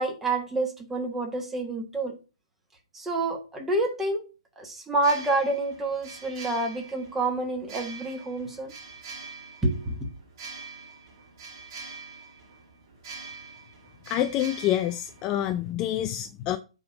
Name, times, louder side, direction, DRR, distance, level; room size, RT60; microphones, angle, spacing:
voice 1, 0.0-2.1 2.9-4.2 4.6-8.7 9.6-9.9, right 2 dB, 10° right, 1.4 m, -28 dB
sound 1, 4.9-15.7, right 4 dB, 40° right, 2.2 m, -44 dB
voice 2, 14.1-16.6, left 12 dB, 20° left, 0.4 m, -27 dB
7.7 x 3.7 x 6.0 m
hypercardioid pair, 150°, 3 cm